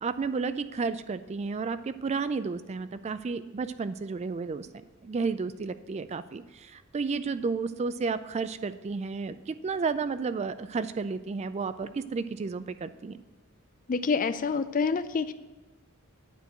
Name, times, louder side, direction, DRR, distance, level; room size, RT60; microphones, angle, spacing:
voice 1, 0.0-4.7 5.0-13.2, right 4 dB, 30° right, 13 dB, 0.3 m, -32 dB
voice 2, 13.9-15.3, left 5 dB, 40° left, 13 dB, 0.4 m, -27 dB
9.5 x 4.5 x 7.7 m, 1.2 s
head